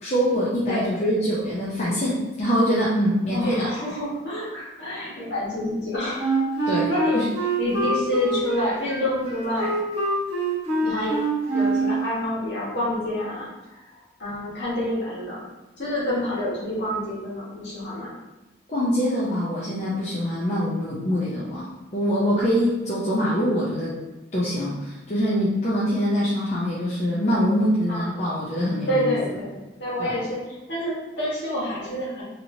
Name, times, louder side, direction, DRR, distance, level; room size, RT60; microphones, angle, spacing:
voice 1, 0.0-3.7 6.7-6.9 7.1-7.3 18.7-23.9 24.3-29.1 30.0-30.2, equal, 35° left, -7 dB, 0.5 m, -24 dB
voice 2, 3.3-6.2 6.9-7.2 7.6-9.8 10.8-11.1 11.5-13.5 14.2-15.4 15.8-18.1 22.4-22.5 27.9-28.1 28.9-30.4 30.7-32.2, left 1 dB, 70° left, -8 dB, 1.4 m, -27 dB
Wind instrument woodwind instrument, 6.2-12.1, right 2 dB, 30° right, 1.1 m, -25 dB
3.0 x 2.8 x 2.7 m, 1.1 s
head